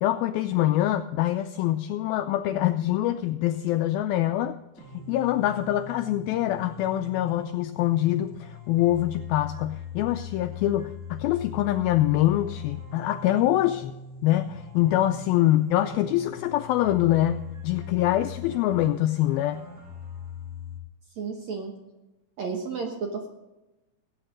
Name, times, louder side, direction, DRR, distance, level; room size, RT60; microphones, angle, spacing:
voice 1, 0.0-4.5 4.9-13.9 14.2-19.6, left 14 dB, 85° left, 9 dB, 2.1 m, -24 dB
sound 1, 4.8-20.8, left 5 dB, 20° right, 6.1 m, -41 dB
voice 2, 21.2-21.7 22.4-23.3, right 5 dB, 65° right, 2 dB, 1.9 m, -32 dB
19.0 x 8.8 x 3.8 m, 1.0 s
omnidirectional pair, 4.7 m